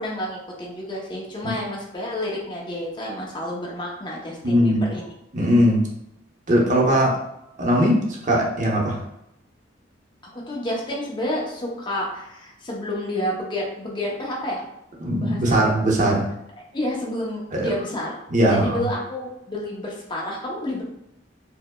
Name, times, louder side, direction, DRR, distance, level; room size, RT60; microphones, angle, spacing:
voice 1, 0.0-5.1 10.3-14.6 15.2-15.6 16.7-18.2 18.5-20.8, left 1 dB, 25° left, -3 dB, 0.7 m, -30 dB
voice 2, 4.4-4.8 5.3-5.8 6.5-7.1 7.6-9.0 15.0-16.3 17.5-17.7 18.3-18.9, equal, 40° right, -2 dB, 0.8 m, -19 dB
4.6 x 2.1 x 2.2 m, 0.81 s
head